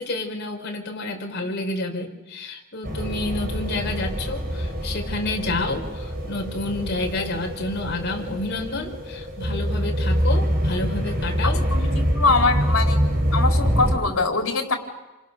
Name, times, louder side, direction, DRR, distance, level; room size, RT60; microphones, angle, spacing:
voice 1, 0.0-11.6, left 2 dB, 50° left, 2 dB, 4.7 m, -29 dB
sound 1, 2.8-14.0, equal, 45° right, 6.1 m, -25 dB
voice 2, 11.7-13.0 13.3-14.7, left 3 dB, 75° left, 3 dB, 4.5 m, -23 dB
29.5 x 27.5 x 6.9 m, 1.1 s
head